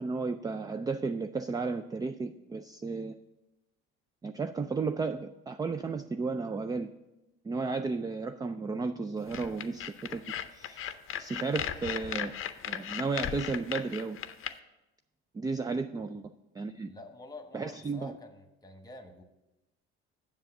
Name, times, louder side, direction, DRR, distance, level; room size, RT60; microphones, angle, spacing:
voice 1, 0.0-3.1 4.2-6.9 7.4-10.3 10.5-12.3 12.7-14.2 15.3-16.9 17.5-18.2, right 4 dB, 15° right, 9 dB, 0.3 m, -34 dB
sound 1, 9.3-14.5, left 10 dB, 45° left, 0.6 m, -36 dB
voice 2, 16.9-19.2, left 2 dB, 15° left, 7 dB, 1.2 m, -48 dB
7.6 x 7.0 x 5.9 m, 0.99 s
supercardioid pair, 85°, 29 cm